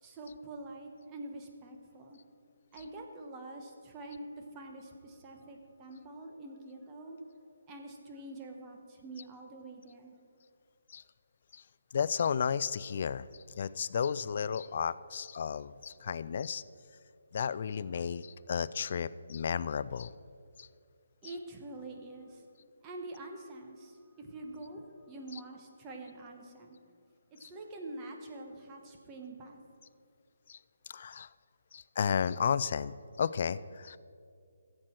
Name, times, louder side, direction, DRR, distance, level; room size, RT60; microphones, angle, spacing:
voice 1, 0.0-2.2 2.7-7.2 7.7-10.1 21.2-22.4 22.8-26.8 27.3-29.6, right 2 dB, 20° right, 2 dB, 1.1 m, -46 dB
voice 2, 11.9-13.3 13.6-16.6 17.3-20.1 20.6-20.7 21.2-21.3 25.3-25.4 27.4-27.5 30.5-30.6 30.9-31.3 31.7-34.0, left 7 dB, 50° left, 16 dB, 0.3 m, -33 dB
14.0 x 7.6 x 4.5 m, 2.3 s
hypercardioid pair, 160°, 0 cm